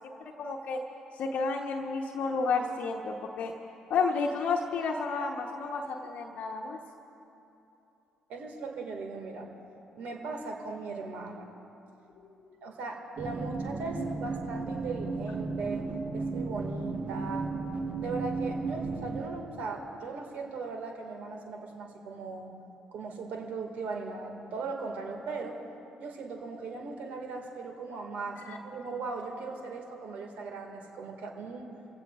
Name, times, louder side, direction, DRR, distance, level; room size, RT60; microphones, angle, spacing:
voice 1, 0.2-0.8 1.1-3.5 3.9-6.8 28.4-28.6, left 4 dB, 60° left, 0 dB, 1.0 m, -31 dB
voice 2, 8.3-9.5 10.0-11.5 12.6-15.8 16.1-17.5 18.0-22.5 22.9-25.6 26.0-31.7, right 4 dB, 65° right, 2 dB, 2.0 m, -38 dB
sound 1, 13.2-19.3, right 4 dB, 50° right, 1.4 m, -34 dB
25.0 x 16.0 x 2.4 m, 3.0 s
hypercardioid pair, 50°, 3 cm